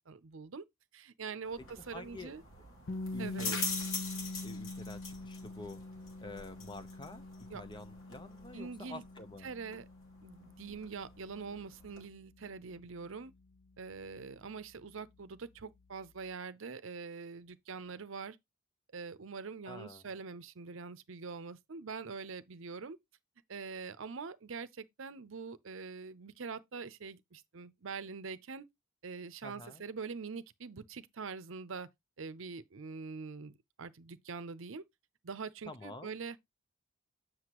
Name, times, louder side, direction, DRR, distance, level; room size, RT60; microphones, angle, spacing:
voice 1, 0.1-0.6 0.9-2.4 3.2-3.6 7.5-7.6 8.5-9.0 9.4-9.9 10.2-13.3 13.8-18.4 18.9-23.0 23.5-28.7 29.0-31.9 32.2-33.5 33.8-34.8 35.2-36.4, right 5 dB, 70° right, 0.6 m, -44 dB
sound 1, 1.4-12.1, left 4 dB, 85° left, 3.0 m, -44 dB
voice 2, 1.9-2.3 3.1-3.6 4.4-5.8 6.2-7.2 7.5-9.5 19.7-20.1 29.4-29.8 35.7-36.1, left 2 dB, 20° left, 0.7 m, -48 dB
sound 2, 2.9-14.7, left 2 dB, 60° left, 0.6 m, -45 dB
7.9 x 6.3 x 3.0 m
head